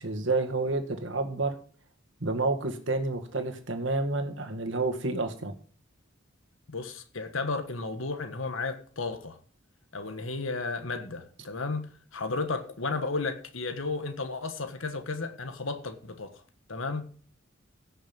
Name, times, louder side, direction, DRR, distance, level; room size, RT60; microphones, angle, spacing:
voice 1, 0.0-1.6 2.2-5.5, right 3 dB, 70° right, 1.9 m, -29 dB
voice 2, 6.7-9.4 9.9-16.3 16.7-17.1, left 3 dB, 85° left, 1.4 m, -33 dB
16.5 x 6.5 x 5.4 m
head